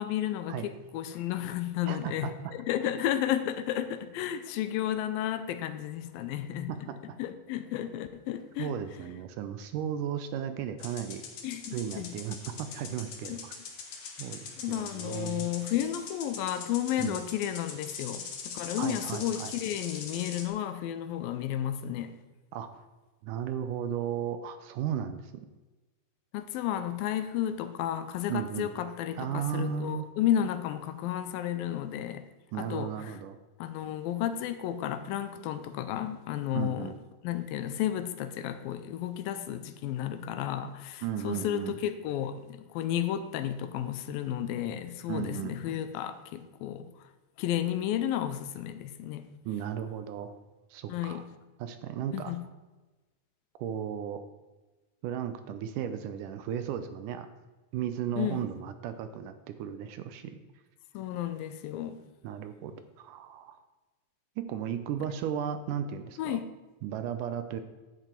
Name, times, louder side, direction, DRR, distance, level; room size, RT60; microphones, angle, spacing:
voice 1, 0.0-6.7 7.2-8.7 11.4-12.1 13.3-13.4 14.6-22.2 26.3-32.3 32.6-33.1 33.6-36.9 37.2-46.9 47.4-49.3 50.9-51.2 52.1-52.4 58.2-58.4 60.9-62.0 66.2-66.4, left 11 dB, 85° left, 2.4 m, -32 dB
voice 2, 1.9-2.3 6.7-7.2 8.6-11.3 11.7-13.6 14.2-15.5 17.0-17.2 18.8-19.5 22.5-22.7 23.2-25.3 28.3-28.7 29.2-30.1 32.5-33.4 36.5-37.0 41.0-41.8 45.1-45.6 49.5-50.3 50.7-51.3 51.6-52.3 53.6-54.2 55.0-57.3 57.7-60.4 62.2-63.6 64.4-66.4 66.8-67.6, right 9 dB, 75° right, 2.0 m, -35 dB
sound 1, 10.8-20.5, left 5 dB, 60° left, 2.0 m, -42 dB
11.0 x 8.0 x 4.4 m
omnidirectional pair, 4.2 m